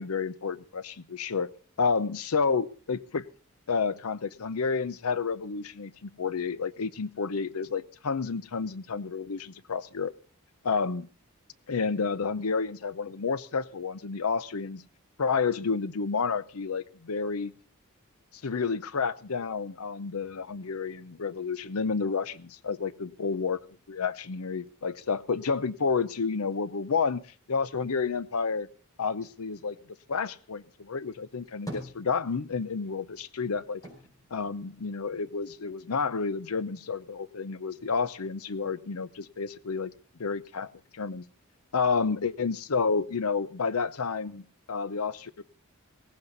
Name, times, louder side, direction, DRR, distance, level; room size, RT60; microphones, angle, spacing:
voice 1, 0.0-1.5 1.8-3.3 3.7-10.1 10.6-11.1 11.7-14.8 15.2-17.5 18.3-23.6 23.9-28.7 29.0-29.8 30.1-33.8 34.3-39.9 40.2-41.2 41.7-45.4, left 5 dB, 75° left, 0.7 m, -30 dB
sound 1, 31.3-32.7 33.0-35.4 35.8-36.7, equal, 15° left, 5.6 m, -45 dB
17.5 x 16.0 x 4.0 m
head